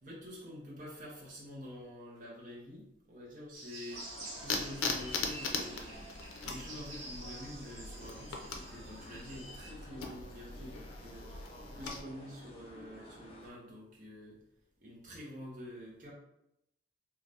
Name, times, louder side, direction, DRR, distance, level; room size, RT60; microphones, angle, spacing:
voice 1, 0.0-5.9 6.4-14.4 14.8-16.1, equal, 40° right, -5 dB, 0.7 m, -48 dB
sound 1, 3.5-9.7, right 2 dB, 75° right, 0.8 m, -49 dB
sound 2, 3.9-13.5, left 1 dB, 30° left, 0.4 m, -52 dB
sound 3, 4.4-12.0, left 4 dB, 90° left, 0.5 m, -40 dB
2.6 x 2.4 x 3.3 m, 0.84 s
head